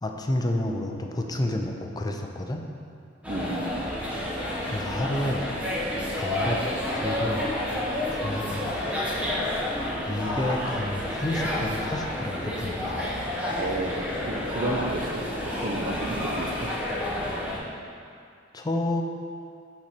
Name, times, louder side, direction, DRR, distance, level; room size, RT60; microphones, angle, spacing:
voice 1, 0.0-2.7 4.7-5.5 6.1-6.6 6.9-7.5 8.1-8.6 10.0-13.1 18.5-19.0, left 1 dB, 20° left, 2 dB, 0.5 m, -30 dB
sound 1, 3.2-17.6, left 1 dB, 5° right, 1.0 m, -30 dB
voice 2, 3.3-3.9 13.6-16.7, right 1 dB, 45° right, 0 dB, 0.7 m, -32 dB
5.8 x 4.1 x 5.9 m, 2.4 s
head